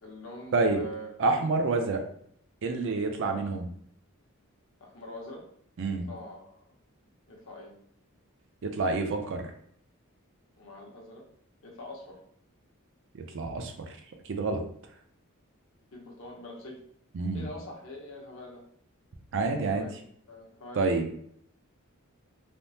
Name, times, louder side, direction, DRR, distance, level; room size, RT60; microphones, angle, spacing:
voice 1, 0.0-1.1 3.3-3.6 4.8-5.4 5.8-6.5 7.3-7.7 9.2-9.3 10.6-11.2 11.6-12.2 15.9-16.8 17.3-18.7 19.7-19.9 20.3-20.8, left 1 dB, 65° left, -1 dB, 0.8 m, -44 dB
voice 2, 1.2-2.0 2.6-3.7 5.8-6.1 8.6-9.5 13.3-13.7 14.2-14.6 17.1-17.4 19.3-19.9 20.8-21.1, right 3 dB, 60° right, 5 dB, 0.4 m, -28 dB
3.3 x 2.0 x 2.7 m, 0.66 s
head